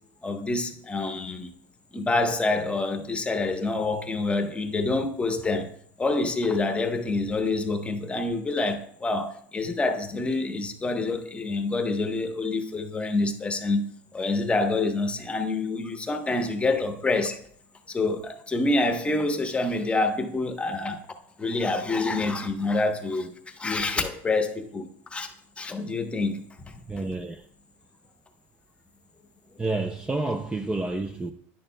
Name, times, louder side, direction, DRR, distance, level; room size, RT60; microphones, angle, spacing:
voice 1, 0.2-1.5 1.9-5.7 6.0-13.8 14.1-17.4 17.9-21.0 21.4-25.3 25.6-26.5, left 3 dB, 15° left, 0.9 m, -27 dB
voice 2, 26.9-27.4 29.6-31.3, right 2 dB, 10° right, 0.4 m, -29 dB
10.5 x 6.6 x 2.2 m
supercardioid pair, 115°, 8 cm